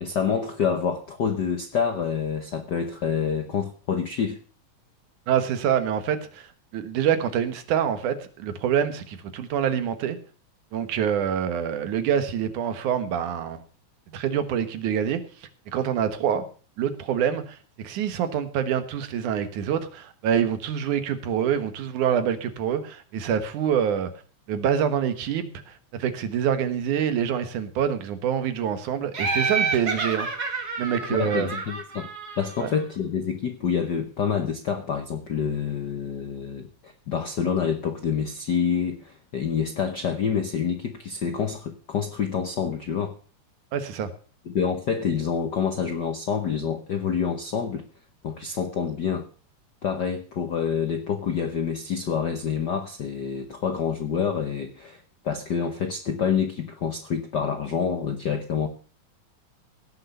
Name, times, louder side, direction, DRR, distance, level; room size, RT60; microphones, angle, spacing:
voice 1, 0.0-4.4 31.1-32.1 32.4-43.1 44.5-47.8 48.2-49.3 49.8-58.7, left 7 dB, 70° left, 7 dB, 1.0 m, -27 dB
voice 2, 5.3-10.2 10.7-13.6 14.1-15.2 15.7-16.5 16.8-24.1 24.5-30.3 30.8-31.5 32.6-32.7 43.7-44.1, right 8 dB, 90° right, 10 dB, 2.8 m, -26 dB
Laughter, 29.1-32.8, right 4 dB, 35° right, 2.2 m, -29 dB
17.0 x 6.8 x 6.7 m, 0.39 s
omnidirectional pair, 3.4 m